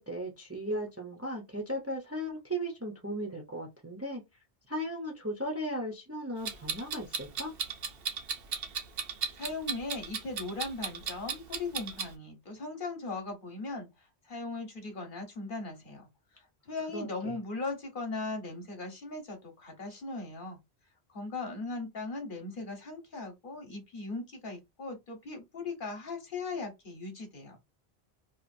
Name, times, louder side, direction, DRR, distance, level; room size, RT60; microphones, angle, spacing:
voice 1, 0.0-7.5 16.9-17.3, equal, 15° right, 0.6 m, -37 dB
Clock, 6.4-12.1, right 6 dB, 65° right, 0.9 m, -35 dB
voice 2, 9.3-16.1 16.3-20.6 21.1-27.6, left 3 dB, 50° left, 1.1 m, -39 dB
2.8 x 2.5 x 2.5 m
omnidirectional pair, 1.1 m